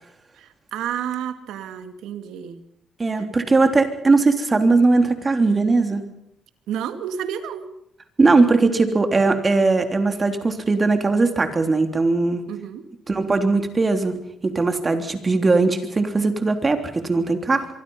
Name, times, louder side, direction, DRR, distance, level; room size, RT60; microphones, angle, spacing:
voice 1, 0.4-2.6 6.7-7.7 12.5-12.9, right 9 dB, 85° right, 9 dB, 2.2 m, -30 dB
voice 2, 3.0-6.0 8.2-12.4 13.1-14.1 14.4-17.7, right 3 dB, 30° right, 6 dB, 3.3 m, -19 dB
24.0 x 24.0 x 5.6 m, 0.76 s
cardioid pair, 90°, 0 cm